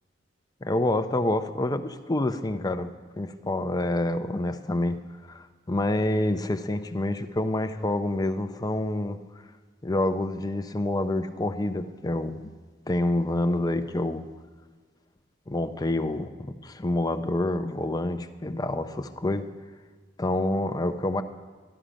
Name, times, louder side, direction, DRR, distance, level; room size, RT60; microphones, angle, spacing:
voice 1, 0.6-2.9 3.2-5.0 5.3-9.2 9.8-12.5 12.9-14.2 15.5-19.4 20.2-21.2, left 1 dB, 20° left, 8 dB, 0.5 m, -27 dB
13.0 x 11.5 x 5.1 m, 1.5 s
head